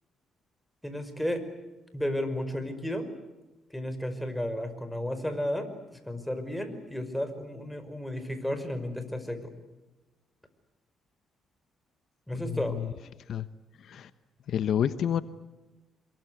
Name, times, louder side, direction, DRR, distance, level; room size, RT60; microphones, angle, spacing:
voice 1, 0.8-1.4 1.9-3.1 3.7-9.5 12.3-12.8, left 1 dB, 5° left, 8 dB, 5.3 m, -33 dB
voice 2, 12.3-12.9 13.3-13.5 13.8-14.1 14.5-15.2, left 9 dB, 65° left, 13 dB, 1.0 m, -29 dB
27.5 x 23.0 x 8.1 m, 1.1 s
cardioid pair, 90°, 0 cm